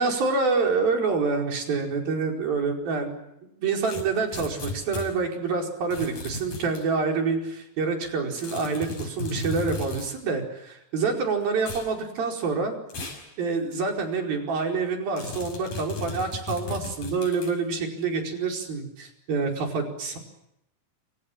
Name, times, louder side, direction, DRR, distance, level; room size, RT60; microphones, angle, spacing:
voice 1, 0.0-3.2 3.6-12.8 13.4-20.2, right 4 dB, 75° right, 3 dB, 6.7 m, -27 dB
sound 1, 3.8-5.1 5.9-6.8 8.4-10.1 11.6-11.9 12.9-13.3 13.7-13.8 15.2-17.6, left 3 dB, 70° left, 7.7 m, -35 dB
28.0 x 27.5 x 7.5 m, 0.83 s
omnidirectional pair, 4.2 m